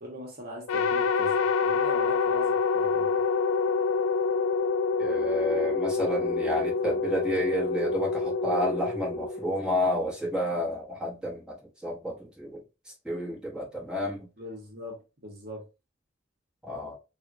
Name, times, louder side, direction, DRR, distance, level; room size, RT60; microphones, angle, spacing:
voice 1, 0.0-3.2 14.4-15.7, equal, 45° right, 0.8 m, -42 dB
sound 1, 0.7-10.0, left 4 dB, 90° left, 0.3 m, -27 dB
voice 2, 5.0-12.6 13.0-14.3 16.6-16.9, equal, 5° right, 0.9 m, -30 dB
3.5 x 2.1 x 2.6 m
head